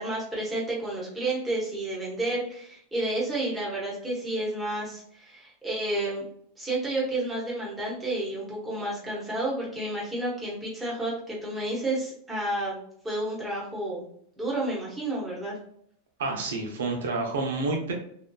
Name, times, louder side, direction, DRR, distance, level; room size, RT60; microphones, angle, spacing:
voice 1, 0.0-6.2 6.6-12.8 13.0-14.1 14.4-15.5, right 1 dB, 10° right, -5 dB, 1.1 m, -31 dB
voice 2, 16.2-17.9, right 3 dB, 85° right, 2 dB, 0.6 m, -29 dB
2.7 x 2.2 x 2.3 m, 0.65 s
supercardioid pair, 135°, 0 cm